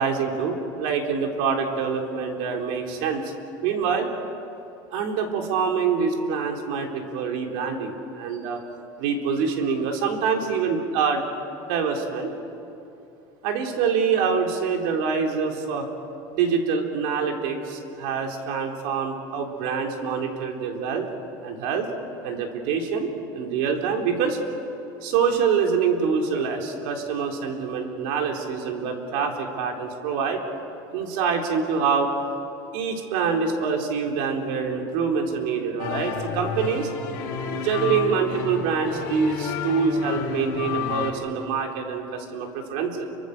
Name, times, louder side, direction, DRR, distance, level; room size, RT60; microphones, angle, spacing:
voice 1, 0.0-3.3 3.6-4.1 4.9-8.6 9.0-11.2 11.7-12.3 13.4-15.9 16.3-21.1 21.4-21.9 22.2-24.4 25.0-30.4 30.9-32.1 32.7-36.9 37.6-43.1, right 6 dB, 65° right, 2 dB, 3.9 m, -25 dB
sound 1, 35.8-41.1, left 6 dB, 65° left, 5.0 m, -30 dB
29.5 x 24.5 x 6.8 m, 2.7 s
cardioid pair, 165°, 11 cm